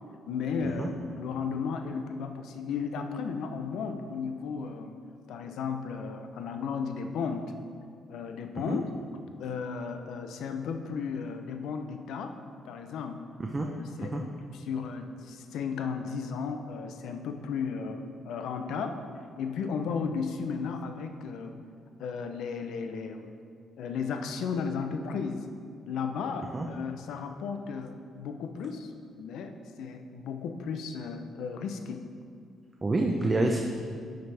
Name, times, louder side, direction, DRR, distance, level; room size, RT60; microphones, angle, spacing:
voice 1, 0.3-5.0 5.3-7.5 8.1-8.9 9.4-12.4 12.6-13.2 13.6-19.0 19.4-21.6 22.0-23.3 23.8-25.5 25.9-28.9 29.2-32.0, left 5 dB, 80° left, 6 dB, 0.7 m, -34 dB
voice 2, 32.8-33.6, right 2 dB, 25° right, 2 dB, 0.7 m, -27 dB
10.5 x 7.9 x 3.5 m, 2.2 s
cardioid pair, 90°, 0 cm